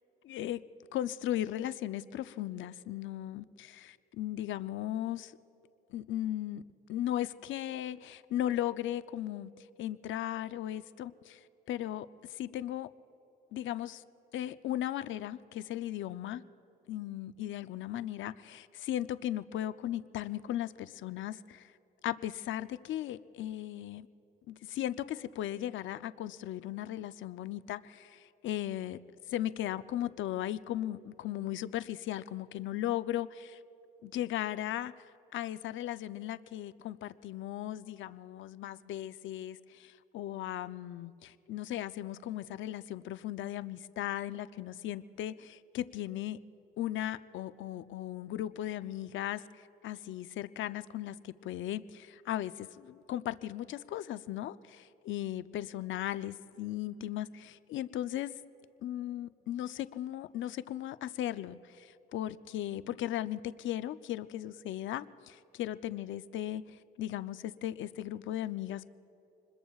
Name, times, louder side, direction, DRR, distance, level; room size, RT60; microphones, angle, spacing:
voice 1, 0.2-0.6 0.9-5.3 5.9-6.6 6.9-12.9 13.5-14.0 14.3-16.4 16.9-21.7 22.0-24.1 24.5-29.0 29.3-33.6 34.0-46.4 46.8-58.4 58.8-68.9, left 12 dB, 75° left, 13 dB, 0.5 m, -37 dB
27.5 x 21.0 x 2.4 m, 2.9 s
cardioid pair, 90°, 20 cm